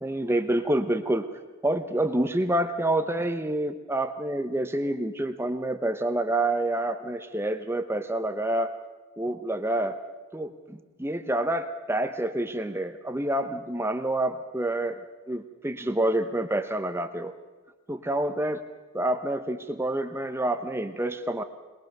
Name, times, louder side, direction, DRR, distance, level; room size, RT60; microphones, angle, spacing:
voice 1, 0.0-1.3 1.6-8.7 9.2-10.0 10.3-15.0 15.3-17.3 17.9-18.6 18.9-21.4, right 1 dB, 10° right, 8 dB, 0.8 m, -28 dB
22.5 x 21.0 x 6.6 m, 1.2 s
head